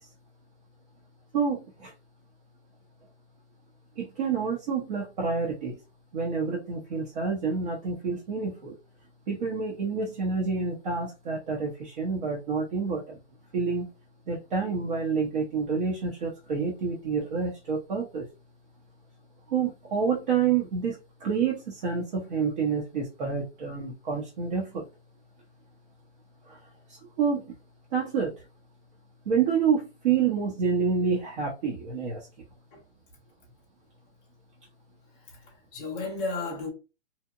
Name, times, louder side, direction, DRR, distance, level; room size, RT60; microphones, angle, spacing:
voice 1, 1.3-1.9 4.0-5.8 6.1-8.7 9.3-13.2 13.5-13.9 14.3-18.3 19.5-24.9 26.5-26.6 26.9-27.6 27.9-28.3 29.3-32.3, right 5 dB, 45° right, 0.7 m, -28 dB
voice 2, 35.1-36.7, left 3 dB, 15° left, 0.4 m, -34 dB
2.8 x 2.0 x 2.3 m
hypercardioid pair, 150°, 36 cm